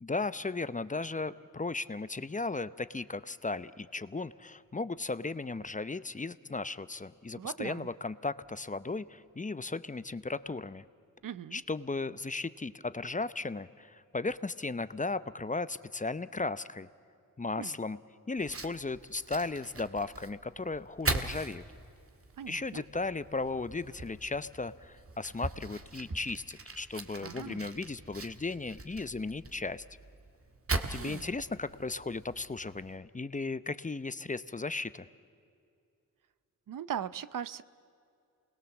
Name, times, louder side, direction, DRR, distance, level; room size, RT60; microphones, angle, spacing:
voice 1, 0.0-10.8 11.5-16.9 17.4-18.0 18.3-21.6 22.5-29.8 30.9-35.1, left 3 dB, 25° left, 15 dB, 0.7 m, -36 dB
voice 2, 7.4-7.9 11.2-11.6 17.6-17.8 22.4-22.8 27.2-27.7 31.0-31.3 36.7-37.6, right 9 dB, 70° right, 16 dB, 0.7 m, -39 dB
Fire, 18.4-33.0, right 3 dB, 40° right, 1.7 m, -41 dB
28.5 x 20.5 x 7.2 m, 2.4 s
cardioid pair, 60°, 34 cm